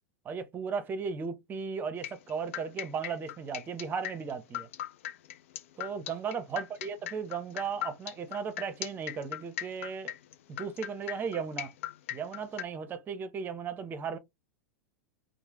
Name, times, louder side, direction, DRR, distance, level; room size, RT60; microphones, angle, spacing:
voice 1, 0.2-4.7 5.8-10.1 10.6-11.7 12.1-14.2, right 6 dB, 25° right, 0.7 m, -36 dB
sound 1, 2.0-12.6, left 12 dB, 70° left, 0.4 m, -38 dB
3.2 x 2.1 x 2.9 m
hypercardioid pair, 105°, 7 cm